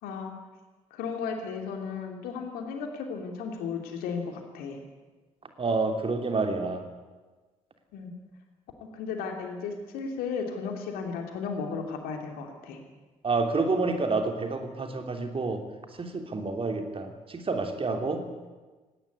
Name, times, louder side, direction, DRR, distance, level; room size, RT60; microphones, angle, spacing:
voice 1, 0.0-0.3 0.9-4.8 7.9-8.1 8.9-12.8, left 5 dB, 65° left, 4 dB, 3.0 m, -34 dB
voice 2, 5.6-6.8 13.2-15.6 16.0-18.3, right 3 dB, 35° right, 5 dB, 3.1 m, -28 dB
18.5 x 17.5 x 9.8 m, 1.3 s
figure-of-eight pair, 40°, 17 cm